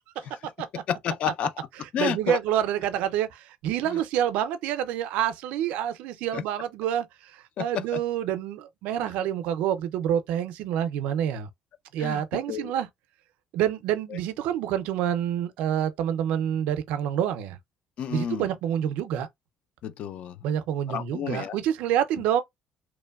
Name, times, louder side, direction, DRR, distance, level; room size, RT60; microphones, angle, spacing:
voice 1, 0.9-1.5 1.9-2.4 3.8-4.0 6.3-6.4 7.6-7.8 12.0-12.7 14.1-14.2 18.0-18.5 19.8-20.4 20.9-21.6, left 9 dB, 65° left, 0.4 m, -30 dB
voice 2, 2.0-11.5 11.9-12.9 13.5-17.6 18.1-19.3 20.4-22.4, right 10 dB, 80° right, 0.4 m, -27 dB
2.9 x 2.2 x 2.2 m
supercardioid pair, 75°, 2 cm